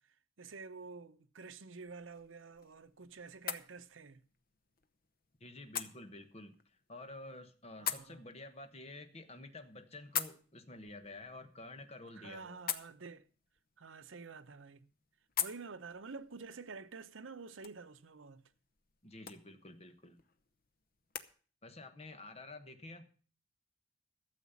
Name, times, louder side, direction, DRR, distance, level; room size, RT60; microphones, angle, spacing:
voice 1, 0.4-4.2 7.8-8.3 12.2-13.2 13.8-14.8 15.4-18.4, right 4 dB, 85° right, 0.8 m, -49 dB
sound 1, 1.8-21.3, left 8 dB, 50° left, 0.8 m, -46 dB
voice 2, 5.4-12.6 19.0-20.2 21.6-23.1, left 2 dB, 30° left, 1.2 m, -50 dB
12.5 x 7.4 x 7.1 m
head